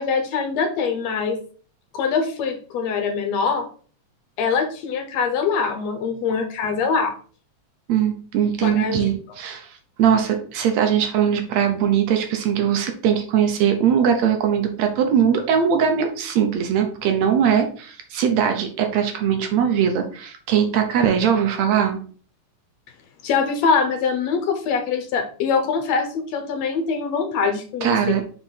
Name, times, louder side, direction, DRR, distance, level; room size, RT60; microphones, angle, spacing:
voice 1, 0.0-1.4 1.9-3.7 4.4-7.1 8.6-9.1 23.2-28.2, left 5 dB, 70° left, 5 dB, 1.9 m, -23 dB
voice 2, 7.9-22.0 27.8-28.2, right 8 dB, 70° right, 5 dB, 2.0 m, -20 dB
5.6 x 4.0 x 4.5 m, 0.41 s
omnidirectional pair, 3.4 m